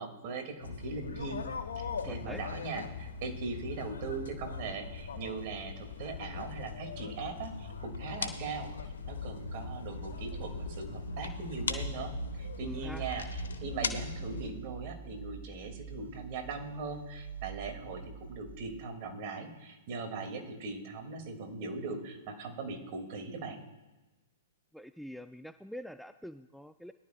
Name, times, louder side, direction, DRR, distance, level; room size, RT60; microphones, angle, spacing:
voice 1, 0.0-1.4 1.8-8.7 9.1-23.6, right 4 dB, 45° right, 4 dB, 2.6 m, -40 dB
sound 1, 0.6-14.5, left 5 dB, 70° left, 1.2 m, -40 dB
voice 2, 2.0-2.4 12.6-13.1 24.7-26.9, equal, ahead, 11 dB, 0.3 m, -45 dB
sound 2, 9.4-18.6, right 6 dB, 80° right, 3.7 m, -45 dB
21.0 x 12.0 x 2.5 m, 1.1 s
figure-of-eight pair, 110°, 0 cm